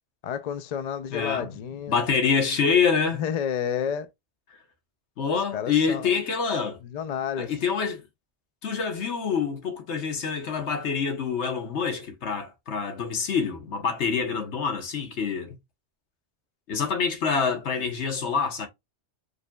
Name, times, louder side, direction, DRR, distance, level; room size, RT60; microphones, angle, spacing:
voice 1, 0.2-2.0 3.1-4.1 5.5-6.1 6.8-7.5, left 8 dB, 55° left, 0.4 m, -30 dB
voice 2, 1.1-1.5 1.9-3.2 5.2-6.8 7.4-8.0 8.6-15.6 16.7-18.7, left 6 dB, 80° left, 1.3 m, -26 dB
5.0 x 3.2 x 2.2 m
omnidirectional pair, 1.2 m